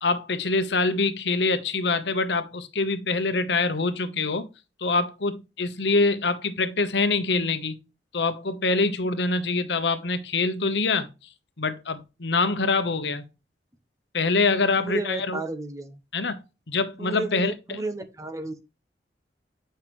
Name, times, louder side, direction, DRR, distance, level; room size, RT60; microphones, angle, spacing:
voice 1, 0.0-4.5 4.8-7.8 8.1-11.1 11.6-13.2 14.1-15.4 16.1-16.4 16.7-17.8, left 3 dB, 80° left, 0.9 m, -25 dB
voice 2, 14.8-16.0 17.0-18.6, right 2 dB, 20° right, 0.8 m, -32 dB
8.0 x 5.6 x 3.1 m
head